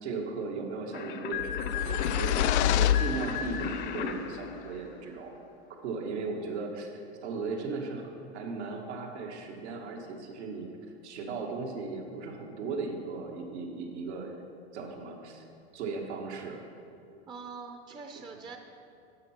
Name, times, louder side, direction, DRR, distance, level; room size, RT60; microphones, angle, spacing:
voice 1, 0.0-5.3 5.8-10.7 11.0-14.3 14.7-15.4 15.7-16.6, right 4 dB, 85° right, 1 dB, 1.7 m, -37 dB
sound 1, 0.9-5.4, left 7 dB, 30° left, 0.6 m, -36 dB
sound 2, 1.4-3.8, left 10 dB, 90° left, 0.5 m, -27 dB
voice 2, 17.3-18.6, right 4 dB, 15° right, 4 dB, 0.5 m, -43 dB
12.5 x 8.6 x 4.4 m, 2.6 s
supercardioid pair, 125°, 33 cm